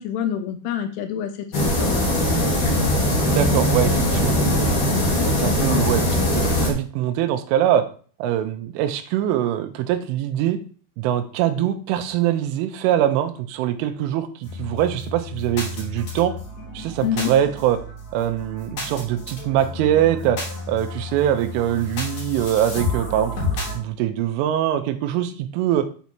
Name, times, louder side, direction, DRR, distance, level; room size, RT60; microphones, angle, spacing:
voice 1, 0.0-2.0 17.0-17.3, left 9 dB, 85° left, 7 dB, 3.2 m, -27 dB
sound 1, 1.5-6.7, left 1 dB, 55° left, 1.4 m, -20 dB
voice 2, 3.3-4.8 5.3-7.8 8.2-10.6 11.0-16.3 16.7-17.8 18.1-20.4 20.7-23.3 23.7-25.9, right 11 dB, 85° right, 7 dB, 3.2 m, -23 dB
sound 2, 14.4-23.8, left 2 dB, 40° left, 4.1 m, -31 dB
8.2 x 5.4 x 4.4 m, 0.41 s
omnidirectional pair, 5.7 m